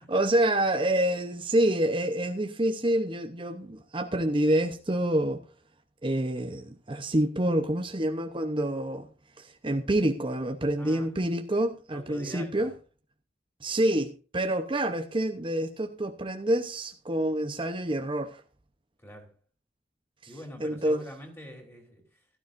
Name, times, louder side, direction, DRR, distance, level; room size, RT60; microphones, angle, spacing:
voice 1, 0.1-5.4 6.0-9.1 9.4-12.7 13.6-18.4 20.6-21.0, right 1 dB, 30° right, 0.9 m, -27 dB
voice 2, 10.8-11.1 11.9-12.7 19.0-19.4 20.3-22.3, equal, 15° left, 3.6 m, -45 dB
17.0 x 12.5 x 2.6 m
head